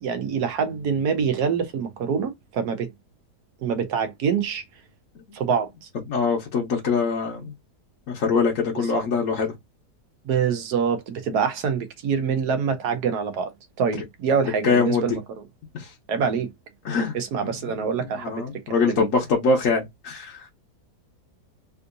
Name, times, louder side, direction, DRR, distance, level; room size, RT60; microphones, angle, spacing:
voice 1, 0.0-2.9 3.6-4.6 5.3-5.9 8.9-9.0 10.2-13.5 13.8-15.2 16.1-16.5 17.1-18.4 19.0-19.1, right 6 dB, 70° right, 1.2 m, -25 dB
voice 2, 6.1-7.5 8.1-9.6 13.9-14.0 14.6-15.2 15.7-15.9 16.8-17.1 17.6-20.5, left 4 dB, 60° left, 1.1 m, -24 dB
3.6 x 2.6 x 2.5 m
omnidirectional pair, 1.8 m